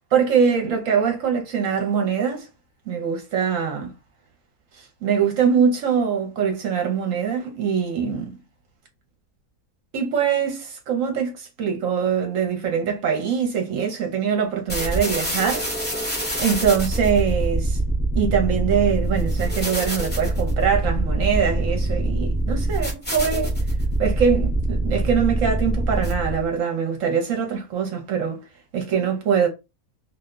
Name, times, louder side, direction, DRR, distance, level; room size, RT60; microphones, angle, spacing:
voice 1, 0.1-2.5 2.9-3.9 4.8-8.3 9.9-15.7 16.4-17.8 18.1-23.5 24.0-28.4 28.7-29.5, right 7 dB, 65° right, 1.0 m, -23 dB
sound 1, 14.7-26.5, right 1 dB, 10° left, 0.7 m, -24 dB
2.6 x 2.2 x 3.7 m
omnidirectional pair, 1.6 m